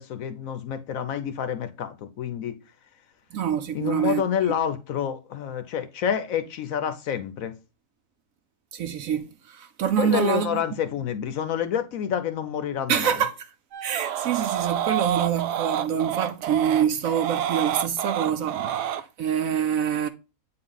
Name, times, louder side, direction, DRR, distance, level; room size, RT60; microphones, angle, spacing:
voice 1, 0.0-2.5 3.7-7.5 10.0-13.1, left 8 dB, 65° left, 1.0 m, -28 dB
voice 2, 3.3-4.2 4.5-4.6 8.7-10.6 12.9-13.3 13.8-20.1, right 9 dB, 70° right, 0.9 m, -26 dB
sound 1, 13.7-19.0, right 10 dB, 90° right, 1.2 m, -28 dB
8.2 x 3.9 x 3.8 m
omnidirectional pair, 1.7 m